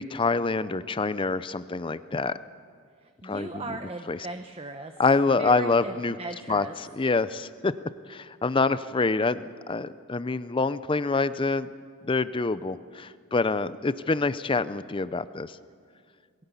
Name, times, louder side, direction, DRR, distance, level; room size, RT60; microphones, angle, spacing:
voice 1, 0.0-2.3 3.2-3.6 4.1-4.2 5.0-6.2 6.5-7.7 8.1-11.7 12.0-15.6, left 3 dB, 25° left, 15 dB, 0.5 m, -26 dB
voice 2, 3.0-4.9 5.4-6.7, right 2 dB, 25° right, 6 dB, 0.8 m, -38 dB
21.5 x 17.0 x 8.2 m, 2.1 s
head